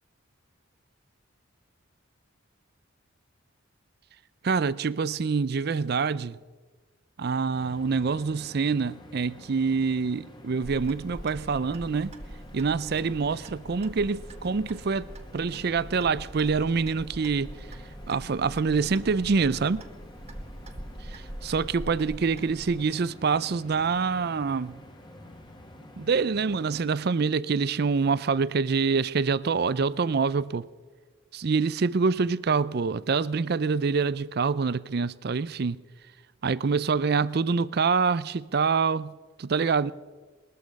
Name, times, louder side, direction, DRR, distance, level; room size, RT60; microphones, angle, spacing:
voice 1, 4.4-6.4 7.2-12.2 12.5-17.6 18.1-19.8 21.1-24.8 26.0-30.7 31.3-35.8 36.4-39.9, right 5 dB, 50° right, 0.5 m, -26 dB
sound 1, 7.5-26.8, left 1 dB, 20° left, 1.6 m, -48 dB
Clock, 10.6-22.8, right 1 dB, 30° right, 1.2 m, -43 dB
20.5 x 13.5 x 5.3 m
head